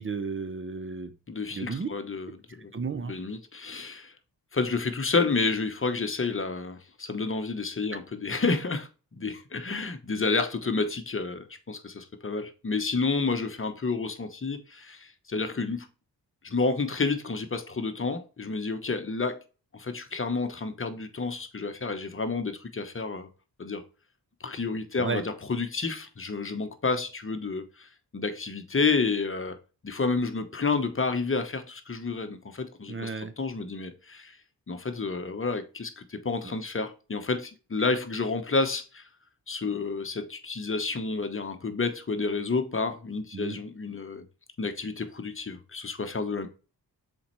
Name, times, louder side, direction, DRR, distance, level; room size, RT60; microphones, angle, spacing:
voice 1, 0.0-1.1 1.5-1.9 2.7-3.1 25.0-25.2 32.9-33.3 43.3-43.6, right 5 dB, 30° right, 0.7 m, -33 dB
voice 2, 1.3-2.7 3.1-4.1 4.5-15.9 16.4-19.4 19.7-23.3 23.6-23.8 24.4-27.9 28.1-29.6 29.8-33.1 33.4-34.4 34.7-39.0 39.5-44.2 44.6-46.5, left 4 dB, 30° left, 1.0 m, -30 dB
7.0 x 4.4 x 3.1 m
cardioid pair, 75°, 39 cm